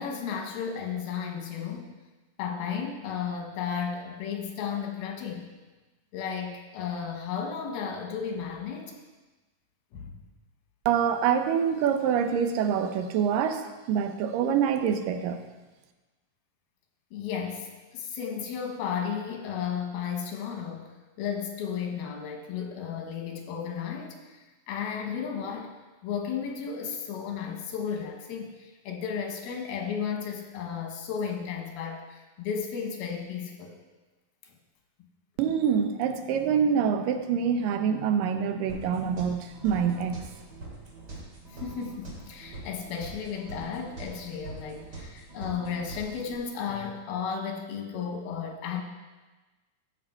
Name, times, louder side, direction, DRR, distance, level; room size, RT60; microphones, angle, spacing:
voice 1, 0.0-1.9 2.4-5.5 6.1-8.9 9.9-10.2 17.1-20.9 21.2-24.4 24.7-25.7 26.0-33.8 41.5-48.8, left 7 dB, 85° left, 2 dB, 3.2 m, -34 dB
voice 2, 10.9-15.5 35.4-40.3, right 7 dB, 75° right, 7 dB, 2.3 m, -26 dB
sound 1, 38.7-46.4, right 3 dB, 30° right, 2.7 m, -43 dB
14.5 x 6.3 x 4.6 m, 1.2 s
omnidirectional pair, 4.2 m